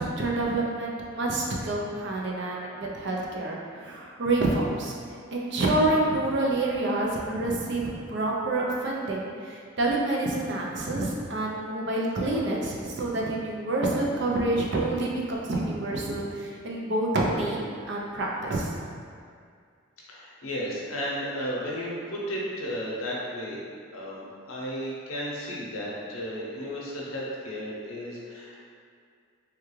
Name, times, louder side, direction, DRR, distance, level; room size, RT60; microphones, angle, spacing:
voice 1, 0.0-4.9 5.3-18.7, right 2 dB, 55° right, -3 dB, 0.5 m, -28 dB
voice 2, 20.1-23.6 23.9-28.6, equal, 85° left, -4 dB, 0.7 m, -34 dB
3.5 x 2.3 x 3.0 m, 2.2 s
head